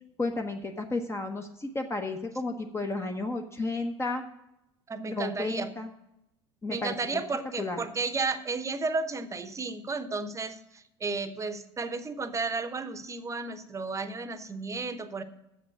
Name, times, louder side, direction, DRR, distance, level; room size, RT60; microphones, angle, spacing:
voice 1, 0.2-4.2 5.1-5.9 6.6-7.2 7.6-7.8, left 2 dB, 15° left, 4 dB, 0.9 m, -32 dB
voice 2, 4.9-5.7 6.7-15.2, right 4 dB, 20° right, 11 dB, 0.9 m, -33 dB
7.5 x 7.0 x 7.7 m, 0.85 s
hypercardioid pair, 75°, 15 cm